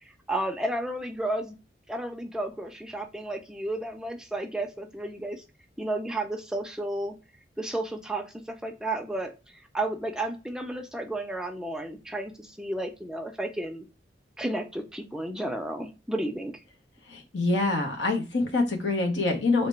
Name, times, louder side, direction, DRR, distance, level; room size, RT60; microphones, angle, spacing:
voice 1, 0.0-1.6 1.9-5.4 5.8-7.1 7.6-13.9 14.4-16.6, right 1 dB, 5° right, 4 dB, 0.4 m, -32 dB
voice 2, 17.1-19.7, left 3 dB, 85° left, 2 dB, 1.1 m, -25 dB
3.3 x 2.9 x 4.4 m, 0.30 s
head